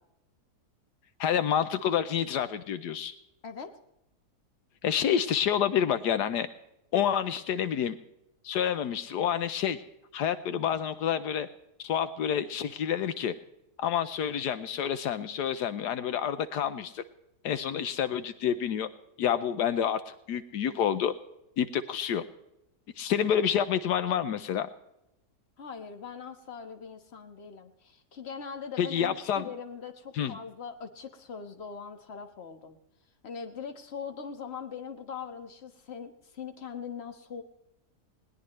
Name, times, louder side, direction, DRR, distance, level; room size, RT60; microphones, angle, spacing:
voice 1, 1.2-3.1 4.8-6.5 6.9-8.0 8.4-9.8 10.1-11.5 11.8-13.3 13.8-17.0 17.4-18.9 19.2-21.1 21.6-22.2 23.0-24.7 28.8-29.5 30.1-30.4, left 9 dB, 80° left, 12 dB, 1.3 m, -28 dB
voice 2, 25.6-32.8 33.2-37.4, left 6 dB, 40° left, 6 dB, 1.6 m, -41 dB
20.5 x 18.5 x 3.2 m, 0.84 s
omnidirectional pair, 1.8 m